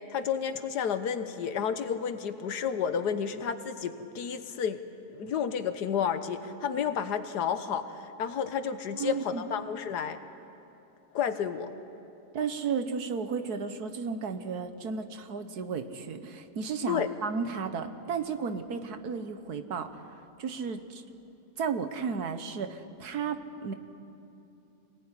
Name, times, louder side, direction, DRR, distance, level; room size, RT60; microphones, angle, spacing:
voice 1, 0.1-4.8 5.1-10.2 11.1-11.7 16.9-17.1, left 7 dB, 85° left, 10 dB, 1.6 m, -31 dB
voice 2, 8.9-9.4 12.3-20.0 20.4-21.0 21.6-23.7, right 5 dB, 70° right, 8 dB, 1.7 m, -33 dB
25.0 x 18.5 x 9.8 m, 2.8 s
omnidirectional pair, 1.7 m